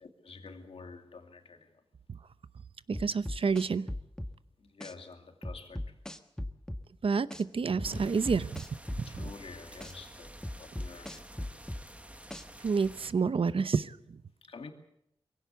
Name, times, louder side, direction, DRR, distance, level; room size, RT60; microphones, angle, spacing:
voice 1, 0.0-1.7 4.6-5.9 9.0-10.3 10.6-11.3 14.4-14.7, left 4 dB, 70° left, 4 dB, 2.5 m, -48 dB
sound 1, 2.9-4.3 4.8-4.9 5.4-6.8 7.3-7.4 7.8-9.3 9.8-9.9 10.4-11.8 12.3-12.4, left 1 dB, 5° left, 1.4 m, -38 dB
voice 2, 2.9-3.9 7.0-8.6 9.2-9.3 12.6-14.0, right 5 dB, 65° right, 15 dB, 0.8 m, -29 dB
sound 2, 7.8-13.1, right 1 dB, 15° right, 1.5 m, -50 dB
23.5 x 16.5 x 8.3 m, 0.80 s
cardioid pair, 65°, 10 cm